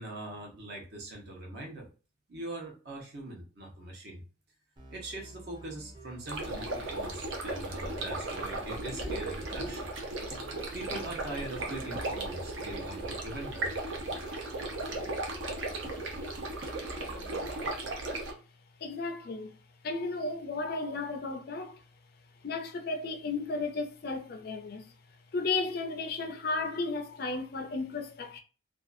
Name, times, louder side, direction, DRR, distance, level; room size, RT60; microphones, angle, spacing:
voice 1, 0.0-1.9 2.3-4.2 4.9-9.9 10.7-13.7, right 2 dB, 55° right, 0.9 m, -42 dB
sound 1, 4.8-17.5, right 1 dB, 25° right, 0.7 m, -51 dB
sound 2, 6.3-18.3, right 2 dB, 75° right, 0.6 m, -36 dB
voice 2, 18.8-19.5 19.8-21.8 22.4-24.9 25.3-28.4, left 3 dB, 50° left, 0.4 m, -34 dB
2.6 x 2.3 x 2.5 m
head